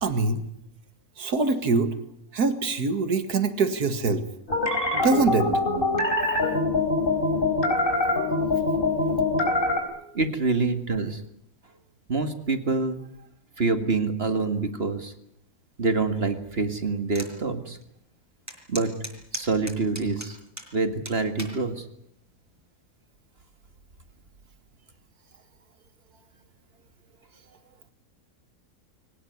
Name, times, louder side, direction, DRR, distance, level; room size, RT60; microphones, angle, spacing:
voice 1, 0.0-0.4 1.2-1.9 2.3-4.2 4.9-5.5, right 3 dB, 85° right, 10 dB, 2.4 m, -24 dB
sound 1, 4.5-9.8, left 2 dB, 35° left, 4.4 m, -24 dB
voice 2, 10.1-11.2 12.1-13.0 13.6-15.1 15.8-17.8 18.7-18.9 19.3-20.4 20.7-21.8, right 3 dB, 40° right, 8 dB, 2.2 m, -26 dB
sound 2, 17.1-17.3 17.8-17.9 18.5-20.7 21.1-21.6 22.3-22.6, equal, 10° right, 5.3 m, -37 dB
23.0 x 19.0 x 9.6 m, 0.74 s
omnidirectional pair, 1.6 m